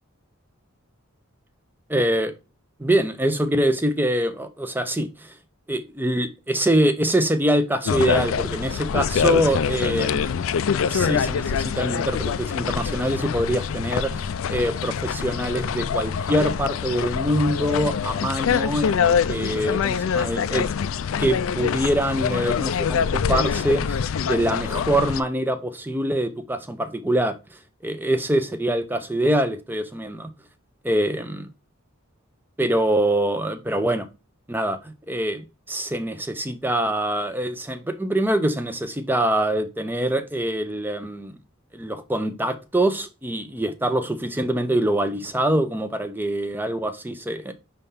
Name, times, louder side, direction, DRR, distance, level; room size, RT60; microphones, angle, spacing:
voice 1, 1.9-2.3 2.8-5.3 5.7-10.4 10.9-20.7 21.2-27.4 27.8-30.3 30.8-31.4 32.6-34.1 34.5-41.4 41.7-47.5, right 1 dB, 10° right, 0.6 m, -24 dB
sound 1, 7.9-25.2, left 7 dB, 65° left, 0.4 m, -25 dB
5.5 x 3.5 x 5.4 m
head